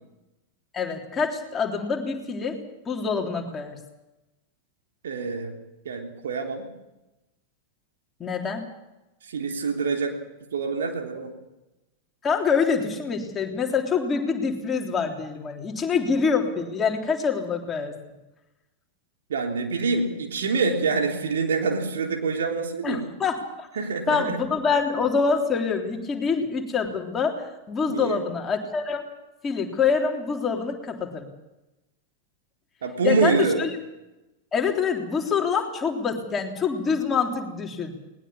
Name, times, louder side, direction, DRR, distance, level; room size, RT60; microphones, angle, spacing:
voice 1, 0.7-2.6 2.9-3.8 8.2-8.7 12.2-17.9 22.8-23.7 24.1-29.0 29.4-31.3 33.0-33.7 34.5-38.0, left 5 dB, 20° left, 2 dB, 3.5 m, -25 dB
voice 2, 5.0-5.5 5.9-6.7 9.3-10.2 10.5-11.3 19.3-23.0 23.8-24.4 27.9-28.2 32.8-33.6, right 4 dB, 65° right, 2 dB, 3.4 m, -26 dB
20.0 x 20.0 x 7.3 m, 0.98 s
figure-of-eight pair, 90°, 0 cm